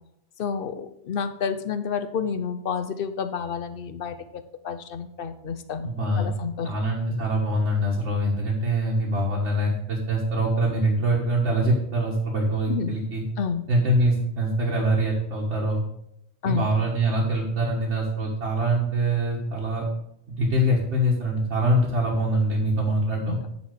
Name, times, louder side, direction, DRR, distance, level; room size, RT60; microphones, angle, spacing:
voice 1, 0.4-5.9 6.2-6.7 12.7-13.0 13.4-13.7 16.4-16.7 23.3-23.4, left 6 dB, 55° left, 10 dB, 0.8 m, -30 dB
voice 2, 5.8-6.3 6.6-13.2 13.7-15.8 16.4-19.8 20.3-23.4, right 1 dB, 75° right, -4 dB, 1.8 m, -24 dB
9.8 x 4.0 x 6.5 m, 0.77 s
omnidirectional pair, 1.2 m